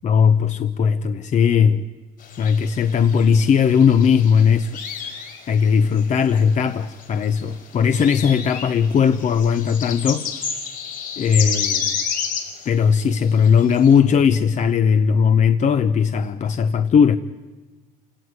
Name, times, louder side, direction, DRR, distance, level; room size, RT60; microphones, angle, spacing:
voice 1, 0.0-1.8 2.4-4.7 5.0-10.2 11.2-11.9 12.7-17.2, left 7 dB, 45° left, 0.9 m, -18 dB
sound 1, 2.2-6.6 7.0-12.7 13.2-13.9, left 7 dB, 60° left, 5.5 m, -30 dB
27.5 x 18.0 x 9.6 m
cardioid pair, 110°, 17 cm